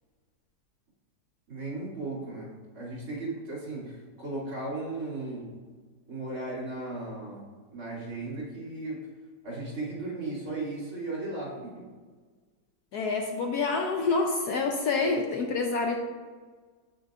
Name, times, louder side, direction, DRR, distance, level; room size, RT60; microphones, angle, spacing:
voice 1, 1.5-5.5 6.1-9.1 9.4-11.9, right 2 dB, 50° right, -7 dB, 3.1 m, -36 dB
voice 2, 12.9-16.0, left 4 dB, 70° left, 3 dB, 1.1 m, -27 dB
8.9 x 8.1 x 2.5 m, 1.4 s
omnidirectional pair, 2.0 m